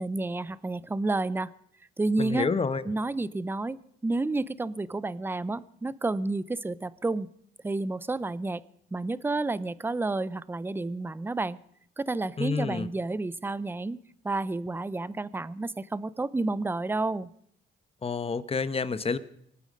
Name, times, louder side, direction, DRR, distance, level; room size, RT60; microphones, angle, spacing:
voice 1, 0.0-1.5 2.0-2.5 2.8-7.3 7.6-8.6 8.9-11.6 12.0-14.0 14.2-17.3, right 2 dB, 10° right, 18 dB, 0.5 m, -30 dB
voice 2, 2.2-2.8 12.4-12.9 18.0-19.2, left 4 dB, 30° left, 14 dB, 1.0 m, -28 dB
24.0 x 9.3 x 5.2 m, 0.68 s
cardioid pair, 90°, 20 cm